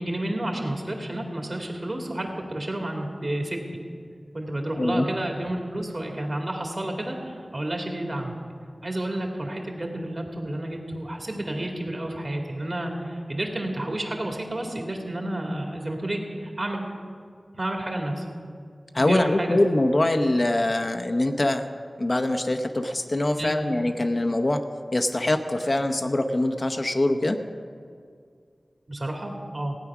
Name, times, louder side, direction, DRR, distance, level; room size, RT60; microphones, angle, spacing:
voice 1, 0.0-3.8 4.3-8.4 8.8-16.8 17.5-18.3 19.0-19.6 23.4-23.6 28.9-29.8, right 1 dB, 45° right, 1 dB, 2.2 m, -30 dB
voice 2, 18.9-21.6 22.0-24.6 24.9-27.4, left 1 dB, 45° left, 6 dB, 0.7 m, -23 dB
16.5 x 9.2 x 6.0 m, 2.2 s
wide cardioid pair, 80°, 0 cm